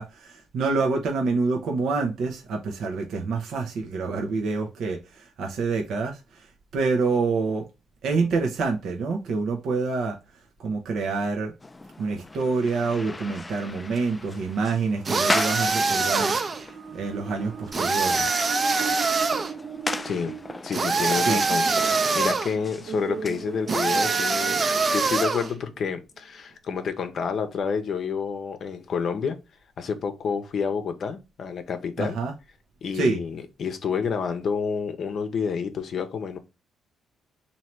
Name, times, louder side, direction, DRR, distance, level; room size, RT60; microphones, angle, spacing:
voice 1, 0.0-6.5 6.7-7.7 8.0-10.2 10.6-11.5 12.0-16.3 16.9-18.4 21.2-21.4 32.0-32.3 32.9-33.2, right 4 dB, 70° right, 0.8 m, -27 dB
sound 1, 11.6-24.0, left 2 dB, 20° left, 0.3 m, -37 dB
sound 2, 15.1-16.6 17.7-19.5 20.7-22.5 23.7-25.5, right 4 dB, 35° right, 0.6 m, -24 dB
sound 3, 16.4-25.8, right 6 dB, 55° right, 1.1 m, -39 dB
voice 2, 20.0-29.4 29.8-32.2 32.8-36.4, left 6 dB, 55° left, 0.7 m, -29 dB
3.1 x 2.7 x 4.4 m
cardioid pair, 90°, 0 cm